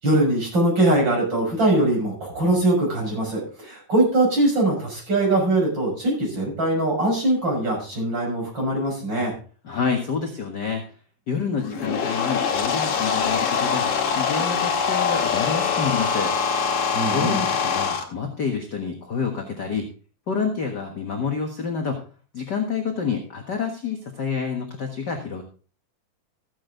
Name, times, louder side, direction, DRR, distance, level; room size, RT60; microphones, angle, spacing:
voice 1, 0.0-9.3 16.9-17.4, right 1 dB, 30° right, -2 dB, 6.6 m, -22 dB
voice 2, 9.6-10.8 11.3-16.3 17.1-19.9 20.3-22.0 22.3-25.4, left 5 dB, 50° left, 2 dB, 1.3 m, -28 dB
sound 1, 11.6-18.0, left 6 dB, 65° left, 2.9 m, -23 dB
14.5 x 8.7 x 3.8 m, 0.38 s
omnidirectional pair, 3.9 m